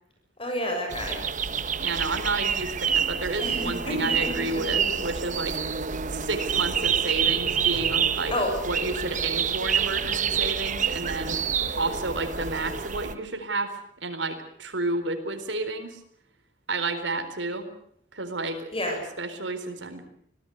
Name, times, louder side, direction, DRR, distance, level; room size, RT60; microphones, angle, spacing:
voice 1, 0.4-1.3 3.4-5.0 8.3-8.6 18.7-19.0, left 1 dB, 30° left, 3 dB, 6.9 m, -30 dB
sound 1, 0.9-13.1, right 7 dB, 45° right, 1.1 m, -27 dB
voice 2, 1.8-5.6 6.1-8.3 8.6-11.4 11.8-16.0 16.7-17.7 18.1-18.7 19.2-20.1, right 3 dB, 80° right, 7 dB, 4.2 m, -31 dB
25.5 x 18.0 x 8.1 m, 0.68 s
head